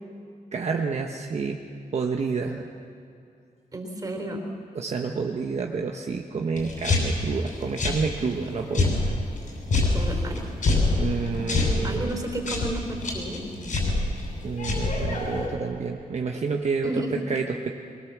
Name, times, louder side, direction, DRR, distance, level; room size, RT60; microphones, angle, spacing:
voice 1, 0.5-1.6 1.9-2.7 4.7-9.2 9.8-10.0 11.0-12.1 14.4-17.7, right 5 dB, 50° right, 2 dB, 1.1 m, -29 dB
voice 2, 3.7-4.4 9.9-10.5 11.8-13.4 16.8-17.1, right 1 dB, 25° right, 2 dB, 4.0 m, -32 dB
sound 1, 6.6-15.5, left 2 dB, 60° left, 6.5 m, -27 dB
23.5 x 22.0 x 7.3 m, 2.5 s
wide cardioid pair, 165°, 15 cm